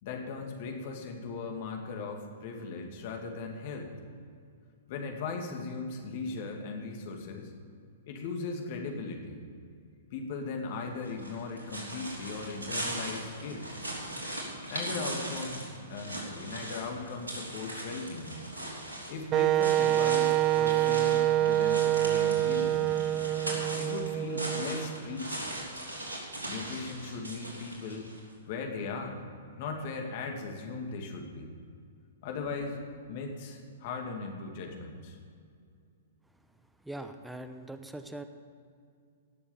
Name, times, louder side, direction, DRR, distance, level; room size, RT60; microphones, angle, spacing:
voice 1, 0.0-3.9 4.9-7.5 8.1-9.4 10.1-13.7 14.7-15.6 15.9-18.4 19.1-23.0 23.8-25.5 26.5-28.1 28.5-29.2 29.6-31.5 32.2-32.8 33.1-35.2, left 4 dB, 45° left, 3 dB, 2.3 m, -38 dB
sound 1, 11.0-28.2, right 1 dB, 80° right, 3.5 m, -39 dB
Wind instrument woodwind instrument, 19.3-25.1, right 13 dB, 30° right, 0.3 m, -26 dB
voice 2, 36.8-38.2, right 1 dB, 5° right, 8 dB, 0.8 m, -41 dB
17.5 x 7.1 x 7.1 m, 2.3 s
figure-of-eight pair, 110°, 0 cm